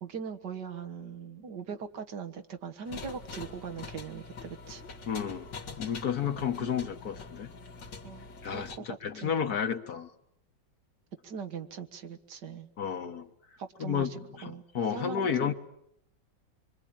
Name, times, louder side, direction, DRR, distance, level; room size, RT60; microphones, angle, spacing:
voice 1, 0.0-4.8 6.2-6.4 8.0-9.4 11.2-12.7 13.6-14.6 14.9-15.5, right 6 dB, 70° right, 8 dB, 2.0 m, -41 dB
sound 1, 2.8-8.8, left 4 dB, 90° left, 2.7 m, -45 dB
voice 2, 5.1-7.5 8.4-10.1 12.8-13.3 13.8-15.5, left 7 dB, 60° left, 8 dB, 1.7 m, -32 dB
26.0 x 24.0 x 8.7 m, 0.72 s
omnidirectional pair, 1.9 m